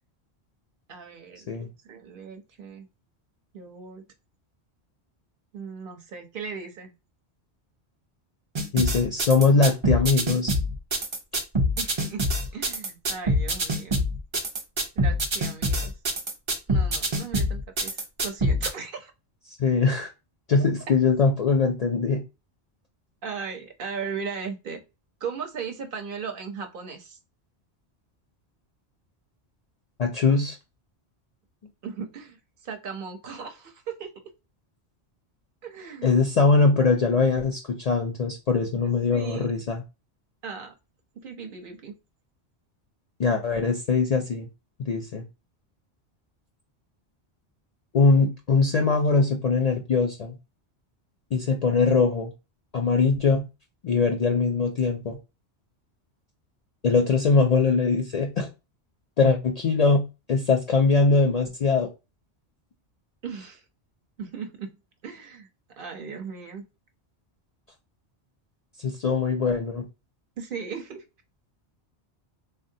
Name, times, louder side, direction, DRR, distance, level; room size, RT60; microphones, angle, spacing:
voice 1, 0.9-1.5 1.8-2.9 3.5-4.0 5.5-6.9 11.8-12.3 12.5-14.0 15.0-15.9 16.7-19.1 23.2-24.8 25.2-27.2 31.8-34.1 35.6-36.1 38.8-39.5 40.4-40.7 41.1-41.9 63.2-63.6 64.2-64.7 65.0-65.5 65.8-66.6 70.4-71.0, right 6 dB, 60° right, 5 dB, 0.7 m, -37 dB
sound 1, 8.5-18.7, equal, 45° right, 0.4 m, -25 dB
voice 2, 8.7-10.6 19.6-20.1 20.5-22.2 30.0-30.6 36.0-39.8 43.2-44.5 44.9-45.2 47.9-50.4 51.3-52.3 52.7-53.4 53.8-55.2 56.8-58.5 59.2-61.9 68.8-69.8, left 4 dB, 55° left, 2 dB, 0.4 m, -22 dB
3.6 x 2.1 x 2.6 m, 0.26 s
omnidirectional pair, 1.1 m